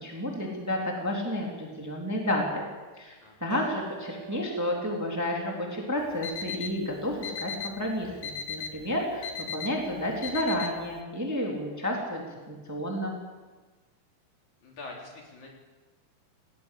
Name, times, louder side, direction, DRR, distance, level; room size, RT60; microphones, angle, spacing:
voice 1, 0.0-2.7 3.0-3.1 3.4-13.1, left 1 dB, 5° right, 0 dB, 3.0 m, -31 dB
voice 2, 3.2-3.6 14.6-15.5, left 2 dB, 50° left, -1 dB, 4.7 m, -44 dB
Acoustic guitar, 3.5-6.9, right 7 dB, 75° right, 4.5 m, -48 dB
Alarm, 6.0-11.0, left 6 dB, 75° left, 2.8 m, -38 dB
18.5 x 18.0 x 8.6 m, 1.3 s
omnidirectional pair, 4.3 m